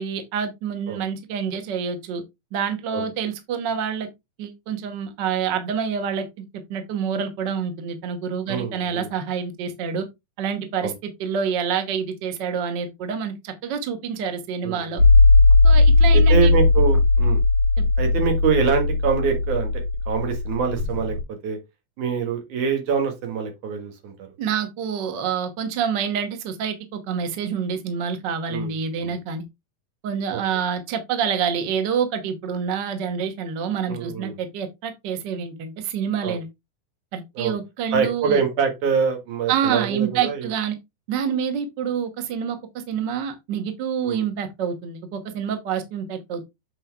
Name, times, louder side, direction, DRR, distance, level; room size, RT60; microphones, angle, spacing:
voice 1, 0.0-2.2 2.5-4.1 4.4-10.1 10.4-15.0 15.6-16.5 17.8-17.9 24.4-29.5 30.0-36.5 37.1-38.4 39.5-40.8 41.1-46.4, right 7 dB, 90° right, 0.9 m, -27 dB
voice 2, 8.5-9.1 10.8-10.9 14.6-15.1 16.3-17.4 18.0-21.2 21.4-21.6 22.0-24.3 28.5-28.7 29.0-29.1 30.3-30.4 33.9-34.3 36.2-36.4 37.4-37.6 37.9-40.5 44.0-44.3, right 6 dB, 65° right, 2.9 m, -25 dB
sound 1, 15.0-21.2, left 3 dB, 40° right, 2.1 m, -17 dB
8.0 x 4.4 x 3.4 m
omnidirectional pair, 4.0 m